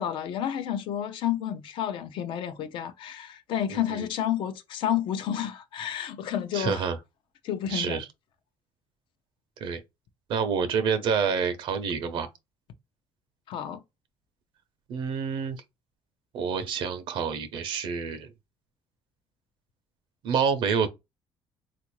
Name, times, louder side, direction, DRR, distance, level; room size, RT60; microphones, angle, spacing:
voice 1, 0.0-6.9 7.4-8.0 13.5-13.8, left 10 dB, 70° left, 0.6 m, -30 dB
voice 2, 3.7-4.0 6.5-7.0 7.7-8.1 9.6-9.8 10.3-12.3 14.9-15.6 16.3-18.3 20.2-20.9, right 6 dB, 65° right, 0.6 m, -28 dB
3.6 x 2.5 x 3.0 m
cardioid pair, 135°, 9 cm